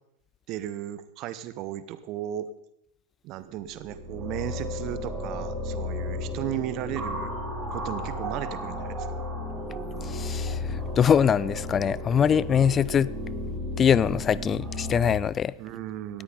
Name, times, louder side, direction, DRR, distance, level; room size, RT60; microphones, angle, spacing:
voice 1, 0.5-2.5 3.2-7.3 7.7-9.2 15.6-16.2, right 12 dB, 40° right, 1.0 m, -35 dB
sound 1, 3.6-15.1, left 1 dB, 20° right, 4.2 m, -33 dB
voice 2, 10.0-13.1 13.8-15.5, left 8 dB, 25° left, 0.4 m, -23 dB
18.5 x 14.0 x 3.9 m
figure-of-eight pair, 90°, 0 cm